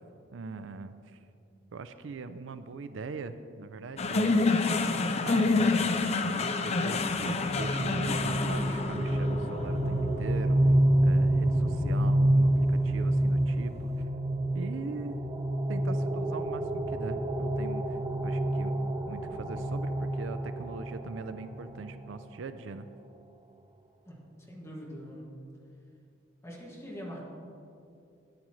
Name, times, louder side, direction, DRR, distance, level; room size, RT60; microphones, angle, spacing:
voice 1, 0.3-1.2 1.7-4.4 4.8-10.6 11.0-14.1 14.5-15.2 15.7-18.8 19.1-22.9, right 4 dB, 85° right, 11 dB, 0.5 m, -41 dB
sound 1, 4.0-12.4, left 3 dB, 35° left, 0.5 m, -29 dB
sound 2, 7.1-21.8, right 1 dB, 20° right, 0.7 m, -28 dB
voice 2, 24.1-25.3 26.4-27.2, equal, 15° left, -4 dB, 2.0 m, -43 dB
13.0 x 9.8 x 3.1 m, 2.6 s
head